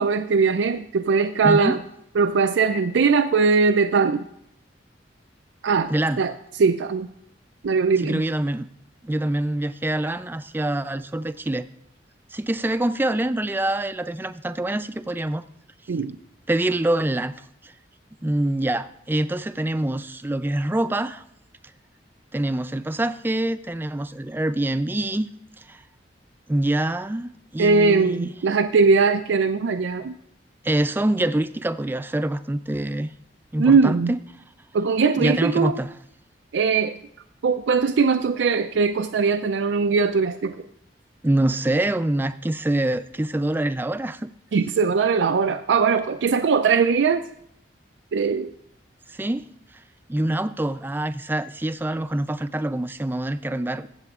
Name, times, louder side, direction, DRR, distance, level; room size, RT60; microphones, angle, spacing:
voice 1, 0.0-1.8 2.2-4.3 5.6-5.9 6.2-6.3 6.6-7.1 7.6-8.2 15.9-16.1 27.6-30.1 33.6-34.1 34.7-35.8 36.5-37.0 37.4-40.6 44.5-47.2 48.1-48.5, right 5 dB, 90° right, 9 dB, 0.4 m, -20 dB
voice 2, 1.4-1.7 5.9-6.2 8.0-8.7 9.0-11.7 12.3-15.4 16.5-17.3 17.6-17.7 18.2-21.2 22.3-25.3 25.7-25.8 26.5-28.3 30.6-33.1 33.5-34.0 35.2-35.9 41.2-44.3 49.1-49.5 50.1-53.9, right 1 dB, 10° right, 12 dB, 0.3 m, -25 dB
21.5 x 7.8 x 2.4 m, 0.73 s
head